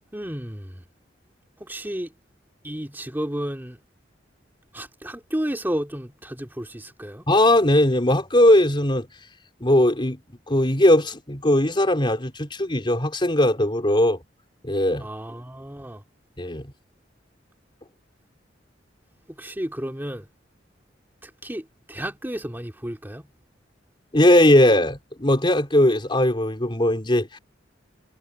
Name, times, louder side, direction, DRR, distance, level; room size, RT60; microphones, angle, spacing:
voice 1, 0.1-0.8 1.6-2.1 2.6-3.8 4.7-7.2 15.0-16.0 19.4-20.2 21.2-23.2, equal, 10° right, 2.6 m, -32 dB
voice 2, 7.3-9.1 9.6-10.2 10.5-14.2 14.6-15.1 16.4-16.6 24.1-27.4, left 1 dB, 25° left, 3.6 m, -19 dB
head